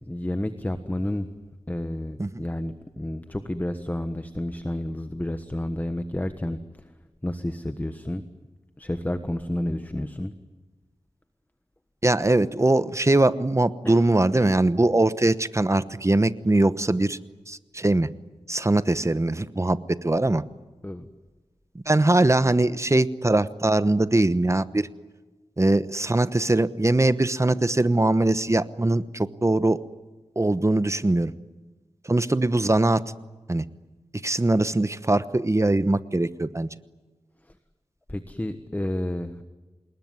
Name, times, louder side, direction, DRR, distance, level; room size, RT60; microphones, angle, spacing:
voice 1, 0.1-1.3 1.7-6.9 7.2-8.2 8.8-10.3 13.8-14.0 14.3-14.5 20.8-21.1 38.1-39.4, left 1 dB, 15° left, 9 dB, 1.4 m, -30 dB
voice 2, 12.0-17.2 17.5-18.1 18.5-20.4 21.7-24.9 25.6-29.8 30.4-31.3 32.1-33.0 33.5-33.6 34.2-36.7, right 2 dB, 25° right, 14 dB, 1.0 m, -22 dB
27.0 x 21.0 x 9.6 m, 1.3 s
wide cardioid pair, 80°, 11 cm